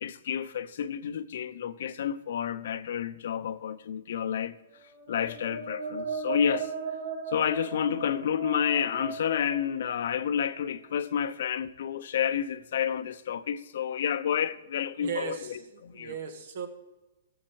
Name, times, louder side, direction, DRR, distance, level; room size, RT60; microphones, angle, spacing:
voice 1, 0.0-4.6 5.1-6.7 7.3-16.1, left 8 dB, 65° left, 0.7 m, -30 dB
sound 1, 4.8-10.6, right 5 dB, 85° right, 4.7 m, -37 dB
voice 2, 15.0-16.7, right 6 dB, 60° right, 1.6 m, -37 dB
14.0 x 7.3 x 4.6 m
hypercardioid pair, 150°, 0 cm